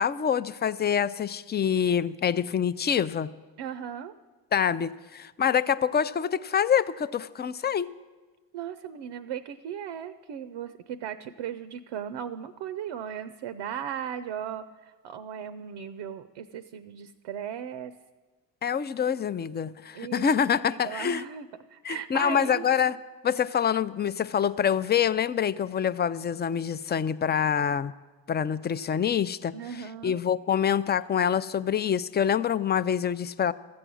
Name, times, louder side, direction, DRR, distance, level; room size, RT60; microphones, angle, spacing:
voice 1, 0.0-3.3 4.5-7.9 18.6-21.2 21.8-23.0 23.2-27.9 28.3-33.5, left 8 dB, 25° left, 15 dB, 0.4 m, -26 dB
voice 2, 3.6-4.1 8.5-17.9 19.9-20.3 20.8-22.7 29.5-30.2, right 9 dB, 70° right, 12 dB, 0.6 m, -37 dB
14.0 x 7.8 x 6.2 m, 1.3 s
hypercardioid pair, 45°, 48 cm